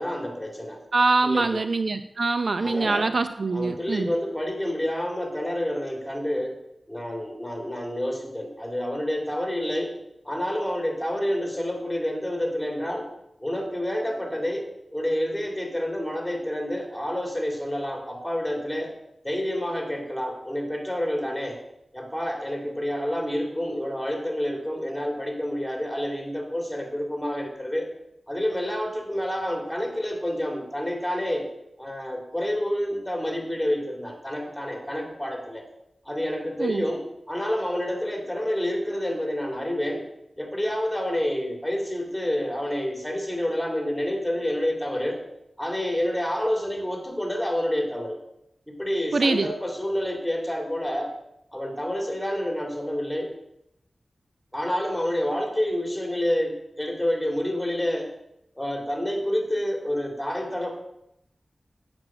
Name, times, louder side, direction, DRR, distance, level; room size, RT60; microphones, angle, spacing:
voice 1, 0.0-0.8 1.2-1.6 2.6-3.1 3.5-6.6 6.9-9.9 10.2-13.1 13.4-18.9 19.2-21.6 21.9-27.9 28.3-31.5 31.8-35.6 36.0-40.0 40.4-45.2 45.6-48.2 48.7-51.1 51.5-53.3 54.5-58.1 58.5-60.7, equal, 5° left, 1 dB, 3.0 m, -28 dB
voice 2, 0.9-4.1 36.6-36.8 49.1-49.5, right 3 dB, 65° right, 9 dB, 0.5 m, -24 dB
7.8 x 6.0 x 7.6 m, 0.80 s
wide cardioid pair, 65°, 0 cm